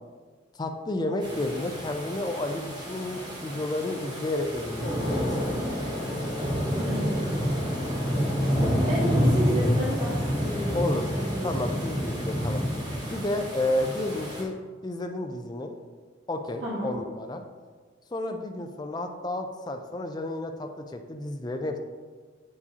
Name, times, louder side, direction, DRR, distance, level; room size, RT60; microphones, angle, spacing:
voice 1, 0.6-5.2 10.7-11.1 11.4-12.8 13.1-14.6 14.8-15.8 16.3-17.4 18.1-21.8, left 1 dB, 20° left, 5 dB, 0.4 m, -31 dB
sound 1, 1.2-14.4, equal, 20° right, 1.2 m, -28 dB
voice 2, 6.8-7.4 8.7-11.6 16.6-16.9, equal, 85° right, -8 dB, 1.3 m, -32 dB
8.1 x 4.7 x 2.9 m, 1.5 s
head